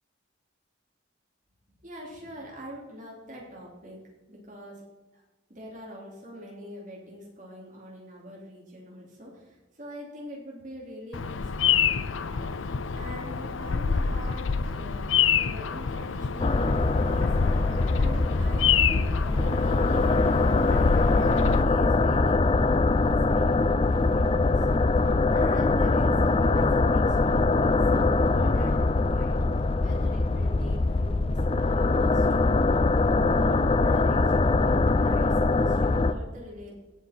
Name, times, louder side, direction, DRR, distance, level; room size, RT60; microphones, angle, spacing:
voice 1, 1.8-4.0 4.3-4.8 5.1-5.2 5.5-15.1 15.3-17.6 18.0-33.0 33.4-36.8, equal, 40° right, -3 dB, 3.2 m, -44 dB
Bird vocalization bird call bird song, 11.1-21.6, left 6 dB, 80° left, 0.5 m, -27 dB
sound 1, 16.4-36.1, left 3 dB, 30° left, 0.4 m, -23 dB
17.0 x 5.9 x 4.5 m, 1.1 s
head